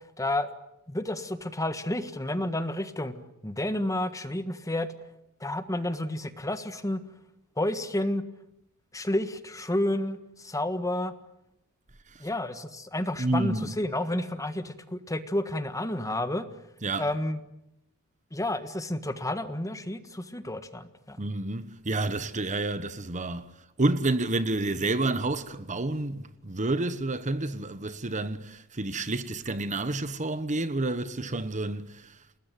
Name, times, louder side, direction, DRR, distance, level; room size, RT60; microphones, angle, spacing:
voice 1, 0.2-0.5 0.9-3.1 3.4-4.9 5.4-7.0 7.6-8.2 8.9-11.1 12.2-16.5 17.0-17.4 18.3-21.2, left 1 dB, 15° left, 1.6 m, -30 dB
voice 2, 13.2-13.7 16.8-17.1 21.2-32.2, right 2 dB, 35° right, 1.2 m, -29 dB
29.5 x 20.0 x 9.3 m
head